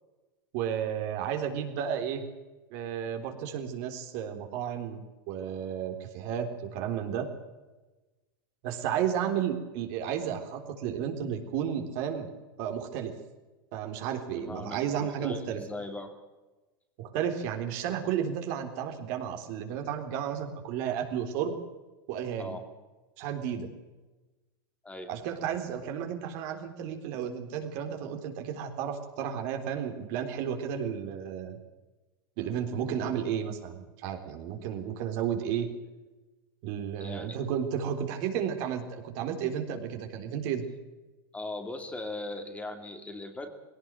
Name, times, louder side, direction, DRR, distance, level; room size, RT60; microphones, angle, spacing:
voice 1, 0.5-2.2 2.7-7.3 8.6-12.3 12.6-13.1 13.7-15.6 17.0-21.5 22.1-22.6 23.2-23.7 25.1-31.6 32.4-35.7 36.6-40.6, right 8 dB, 60° right, 5 dB, 3.7 m, -32 dB
voice 2, 14.3-16.1 22.4-22.6 24.8-25.1 37.0-37.4 41.3-43.5, left 2 dB, 10° left, 6 dB, 2.6 m, -39 dB
19.5 x 17.5 x 7.6 m, 1.2 s
hypercardioid pair, 115°, 12 cm